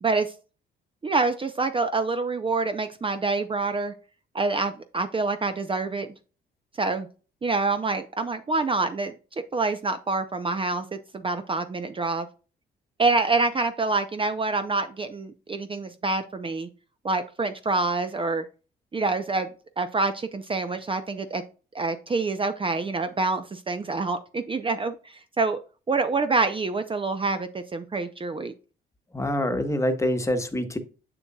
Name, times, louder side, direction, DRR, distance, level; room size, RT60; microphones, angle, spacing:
voice 1, 0.0-0.3 1.0-3.9 4.3-6.1 6.8-7.1 7.4-12.3 13.0-16.7 17.0-18.4 18.9-19.5 19.8-21.4 21.7-25.6 25.9-28.5, right 3 dB, 25° right, 8 dB, 0.6 m, -26 dB
voice 2, 29.1-30.8, left 1 dB, 15° left, 7 dB, 1.2 m, -25 dB
7.0 x 6.9 x 2.3 m, 0.35 s
cardioid pair, 90°, 20 cm